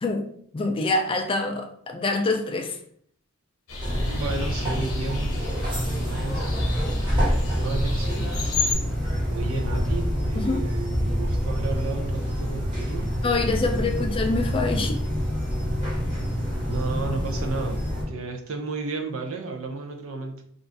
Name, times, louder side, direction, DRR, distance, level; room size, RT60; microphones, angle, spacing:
voice 1, 0.5-2.8 10.3-10.6 13.2-15.0, left 3 dB, 25° left, 0.3 m, -25 dB
sound 1, 3.7-8.7, left 4 dB, 80° left, 0.9 m, -33 dB
sound 2, 3.8-18.0, equal, 20° right, 1.2 m, -26 dB
voice 2, 3.9-6.6 7.6-8.3 9.3-14.1 16.7-20.4, right 3 dB, 70° right, 0.5 m, -33 dB
2.5 x 2.5 x 3.3 m
head